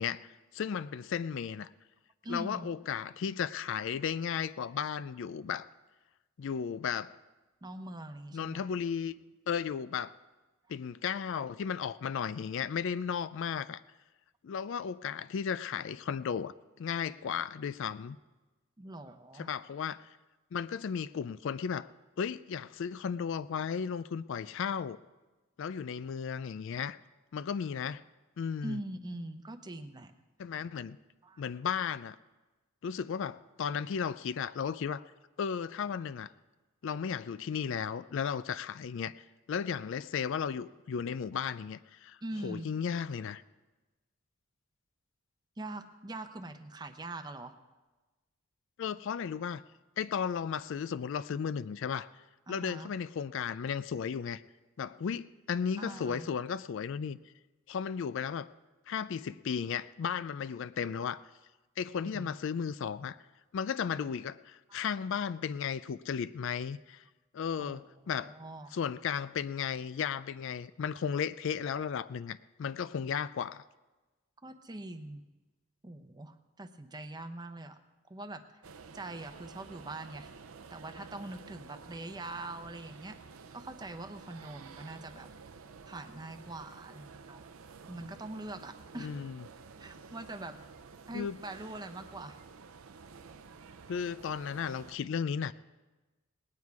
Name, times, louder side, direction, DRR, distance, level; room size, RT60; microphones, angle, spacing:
voice 1, 0.0-1.7 2.3-5.7 6.4-7.1 8.3-9.2 9.5-10.1 10.7-13.8 14.4-18.2 19.3-20.0 20.5-21.9 22.2-25.0 25.6-27.0 27.3-28.0 28.4-28.8 30.4-31.0 31.4-32.2 32.8-35.0 35.4-36.3 36.8-43.4 48.8-49.6 50.0-52.1 52.5-54.4 54.8-57.2 57.7-58.5 58.9-61.2 61.8-63.2 63.5-67.0 67.3-68.3 68.7-73.6 89.0-89.4 91.1-91.4 93.9-95.5, left 7 dB, 60° left, 16 dB, 0.3 m, -35 dB
voice 2, 2.2-2.7 7.6-8.7 18.8-19.5 28.6-30.1 31.2-31.4 42.2-42.7 45.6-47.6 52.5-52.9 55.8-56.3 62.1-62.3 64.7-64.8 67.6-67.8 68.2-68.8 74.4-75.2 75.8-77.8 78.1-78.4 78.9-80.3 80.7-83.2 83.5-85.3 85.9-87.5 87.9-89.1 89.8-90.6 91.1-92.4, right 2 dB, 20° right, 9 dB, 0.7 m, -43 dB
sound 1, 78.6-95.0, right 5 dB, 80° right, 0.7 m, -51 dB
19.5 x 9.5 x 4.7 m, 1.2 s
head